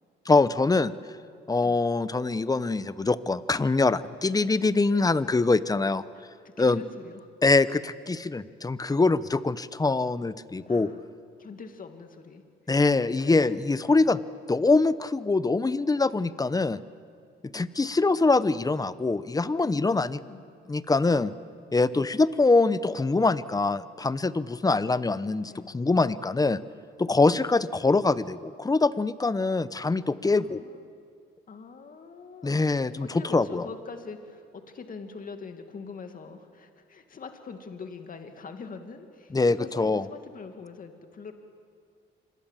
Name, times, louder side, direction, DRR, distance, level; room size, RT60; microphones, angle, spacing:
voice 1, 0.3-0.9 1.5-6.0 6.6-6.8 7.4-10.9 12.7-14.2 14.5-16.8 17.5-20.2 20.7-21.3 21.7-26.6 27.0-30.6 32.4-33.1 33.3-33.6 39.3-40.0, left 3 dB, 20° left, 15 dB, 0.8 m, -24 dB
voice 2, 6.1-7.3 10.7-11.1 11.4-12.7 13.1-14.1 17.5-17.7 19.6-20.4 21.9-22.1 25.5-25.7 30.2-30.9 31.5-32.6 33.0-41.3, left 5 dB, 45° left, 6 dB, 2.3 m, -44 dB
26.5 x 21.5 x 7.4 m, 2.2 s
cardioid pair, 90°, 20 cm